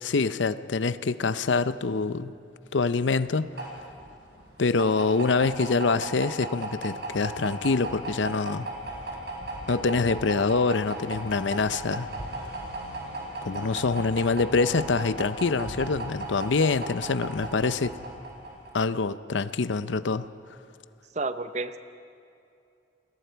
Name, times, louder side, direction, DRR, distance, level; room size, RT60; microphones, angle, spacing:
voice 1, 0.0-2.3 2.7-3.7 4.6-8.7 9.7-12.1 13.4-17.9 18.7-20.3, left 4 dB, 75° left, 14 dB, 0.6 m, -25 dB
sound 1, 2.8-18.8, right 1 dB, 60° right, 4.7 m, -36 dB
voice 2, 21.2-21.8, right 3 dB, 40° right, 11 dB, 0.7 m, -30 dB
29.0 x 21.0 x 4.6 m, 2.6 s
head